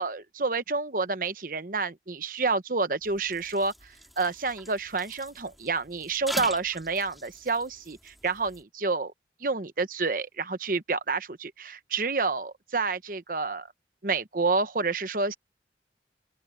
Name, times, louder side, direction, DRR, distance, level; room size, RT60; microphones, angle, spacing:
voice 1, 0.0-9.1 9.4-13.7 14.0-15.4, right 4 dB, 50° right, 1.0 m, -29 dB
sound 1, 3.0-8.6, equal, ahead, 2.5 m, -43 dB
head